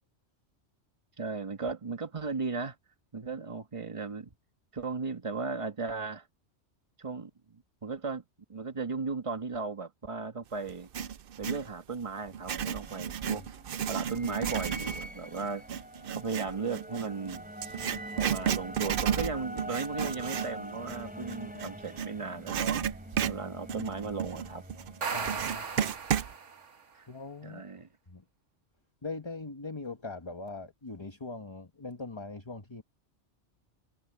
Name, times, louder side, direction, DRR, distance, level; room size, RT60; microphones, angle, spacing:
voice 1, 1.2-2.7 3.1-4.3 4.7-6.3 7.0-8.2 8.5-10.9 11.4-13.4 13.9-15.6 16.1-17.4 18.2-22.8 23.3-24.6 26.9-27.1 27.4-27.9, right 4 dB, 30° right, 1.4 m, -36 dB
Writing, 10.7-11.7 12.3-22.1 22.5-26.3, right 8 dB, 55° right, 0.7 m, -33 dB
sound 1, 12.2-25.9, equal, 5° right, 3.2 m, -44 dB
sound 2, 24.8-26.8, right 6 dB, 85° right, 1.7 m, -36 dB
voice 2, 25.1-26.0 27.1-27.6 28.1-28.2 29.0-32.8, left 3 dB, 25° left, 1.3 m, -41 dB
omnidirectional pair, 1.2 m